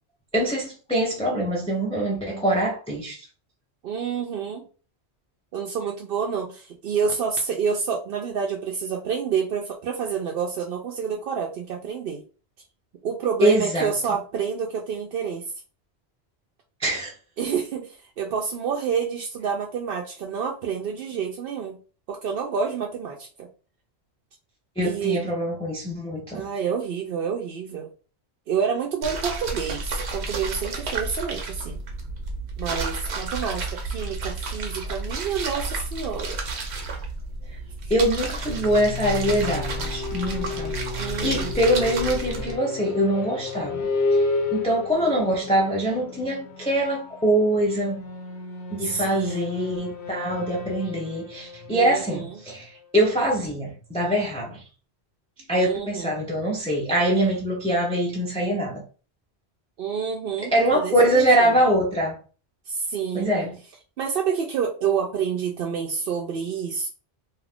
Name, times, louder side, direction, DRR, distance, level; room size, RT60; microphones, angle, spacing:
voice 1, 0.3-3.2 13.4-13.9 16.8-17.1 24.8-26.4 37.9-43.9 44.5-48.0 48.7-54.6 55.5-58.8 60.5-62.2 63.1-63.5, right 1 dB, 5° left, 0.5 m, -23 dB
voice 2, 3.8-4.6 5.5-12.2 13.0-15.5 17.4-21.8 22.1-23.5 24.8-25.2 26.3-27.9 28.5-31.8 32.6-36.4 37.8-37.9 41.0-41.6 48.8-49.5 51.7-52.4 55.6-56.1 59.8-61.6 62.7-63.3 64.0-66.9, right 6 dB, 65° right, 0.7 m, -28 dB
sound 1, 29.0-42.6, right 3 dB, 90° right, 1.0 m, -31 dB
sound 2, 38.4-53.0, left 3 dB, 75° left, 0.9 m, -32 dB
2.7 x 2.4 x 3.4 m
omnidirectional pair, 1.1 m